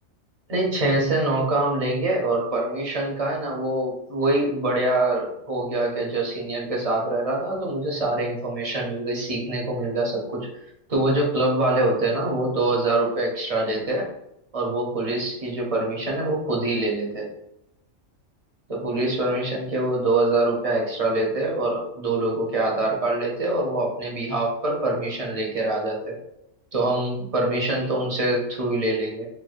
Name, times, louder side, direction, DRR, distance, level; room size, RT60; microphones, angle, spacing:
voice 1, 0.5-10.6 10.9-14.1 14.5-17.3 18.7-26.2 26.7-29.3, right 2 dB, 35° right, -1 dB, 0.6 m, -24 dB
4.4 x 2.1 x 2.4 m, 0.83 s
omnidirectional pair, 1.3 m